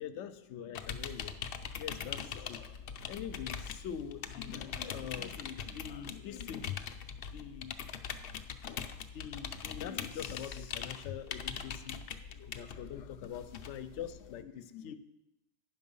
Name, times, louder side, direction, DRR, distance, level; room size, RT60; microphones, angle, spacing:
voice 1, 0.0-1.3 1.8-6.8 7.3-7.9 8.6-15.0, left 9 dB, 90° left, 12 dB, 0.9 m, -44 dB
sound 1, 0.8-14.4, left 7 dB, 60° left, 0.7 m, -42 dB
9.3 x 6.0 x 5.4 m, 0.94 s
omnidirectional pair, 1.2 m